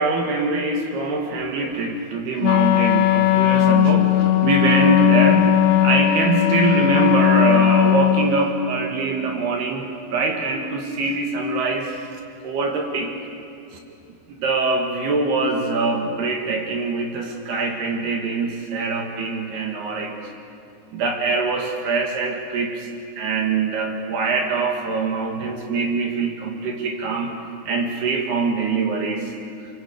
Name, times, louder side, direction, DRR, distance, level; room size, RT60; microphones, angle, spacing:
voice 1, 0.0-9.8 10.1-12.0 12.4-13.1 14.3-20.3 20.9-22.9 23.2-27.3 27.7-29.3, right 3 dB, 60° right, 2 dB, 3.4 m, -23 dB
Wind instrument woodwind instrument, 2.4-8.5, left 12 dB, 75° left, 3.2 m, -17 dB
25.5 x 23.0 x 8.5 m, 2.5 s
omnidirectional pair, 6.0 m